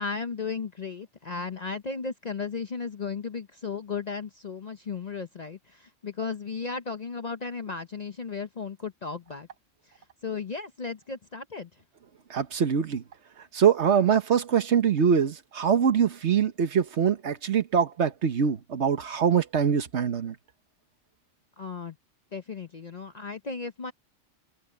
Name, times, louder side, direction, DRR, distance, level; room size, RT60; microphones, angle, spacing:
voice 1, 0.0-9.5 9.9-11.8 21.6-22.0 22.3-23.9, left 5 dB, 40° left, 0.7 m, -35 dB
voice 2, 12.3-13.0 13.4-20.3, right 7 dB, 60° right, 1.3 m, -24 dB
omnidirectional pair, 1.3 m